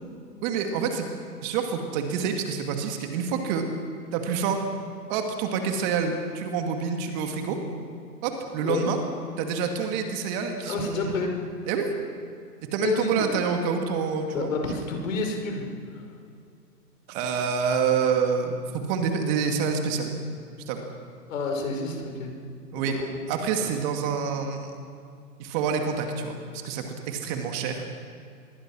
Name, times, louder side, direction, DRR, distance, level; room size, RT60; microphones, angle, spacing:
voice 1, 0.4-1.1 1.4-3.7 4.1-4.6 5.1-7.6 8.2-9.0 9.4-11.2 11.7-11.9 12.7-14.5 17.1-20.2 20.7-20.8 22.7-23.0 23.3-24.7 25.4-27.8, right 6 dB, 25° right, 4 dB, 2.3 m, -27 dB
voice 2, 10.7-11.3 12.8-13.3 14.3-15.6 15.9-16.1 21.3-22.3 22.8-23.1, left 4 dB, 50° left, 3 dB, 5.7 m, -29 dB
25.5 x 21.5 x 6.3 m, 2.4 s
hypercardioid pair, 140°, 48 cm